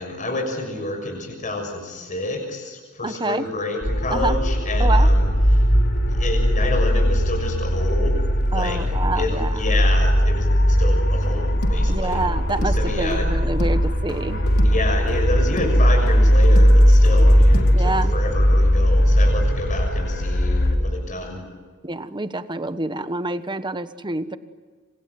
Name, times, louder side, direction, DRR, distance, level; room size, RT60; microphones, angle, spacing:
voice 1, 0.0-5.3 6.0-8.1 8.5-8.8 9.1-10.5 10.8-12.2 12.8-13.3 14.6-21.4, left 2 dB, 35° left, 2 dB, 6.7 m, -29 dB
voice 2, 3.0-3.5 4.1-4.4 4.8-5.1 8.5-9.7 11.9-14.4 15.0-15.2 17.7-18.2 21.8-24.4, right 2 dB, 20° right, 11 dB, 1.2 m, -27 dB
sound 1, 3.8-20.8, equal, 55° left, 3.2 m, -18 dB
sound 2, 11.2-17.7, equal, 85° left, 3.1 m, -30 dB
27.0 x 26.5 x 7.7 m, 1.5 s
head